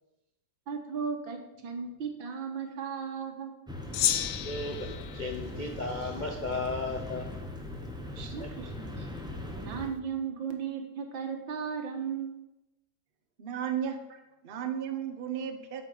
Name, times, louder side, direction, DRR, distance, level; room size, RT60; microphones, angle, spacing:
voice 1, 0.7-3.5 8.2-8.9 9.6-12.3, right 6 dB, 75° right, 4 dB, 2.1 m, -36 dB
sound 1, 3.7-9.9, left 1 dB, 5° right, 0.6 m, -40 dB
Gong, 3.9-6.6, left 11 dB, 75° left, 1.3 m, -33 dB
voice 2, 4.4-7.3 8.2-8.6 9.0-9.1, left 3 dB, 60° left, 3 dB, 0.4 m, -35 dB
voice 3, 13.4-14.0 14.4-15.8, right 8 dB, 40° right, 7 dB, 0.8 m, -34 dB
8.5 x 5.6 x 6.9 m, 0.93 s
omnidirectional pair, 2.1 m